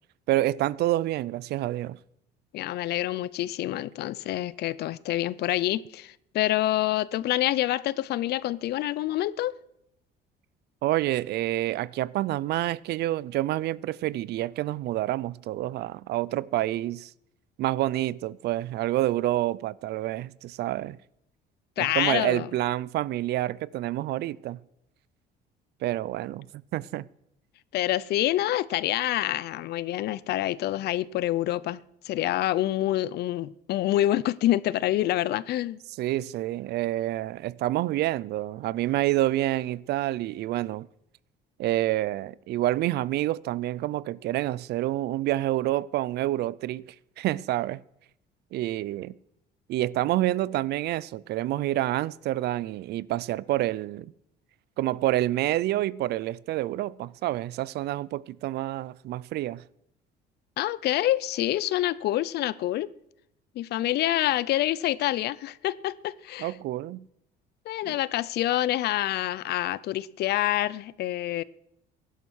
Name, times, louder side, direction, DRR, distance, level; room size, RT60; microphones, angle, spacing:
voice 1, 0.3-2.0 10.8-17.1 17.6-21.0 21.8-24.6 25.8-27.1 36.0-40.9 41.6-46.8 47.2-47.8 48.5-49.1 49.7-54.1 54.8-59.6 66.4-67.0 67.8-67.9, right 15 dB, 60° right, 0.5 m, -28 dB
voice 2, 2.5-9.6 21.8-22.5 27.7-31.8 32.0-35.8 60.6-62.9 63.6-66.5 67.7-71.4, left 14 dB, 60° left, 0.6 m, -27 dB
17.0 x 11.5 x 6.4 m
cardioid pair, 140°, 19 cm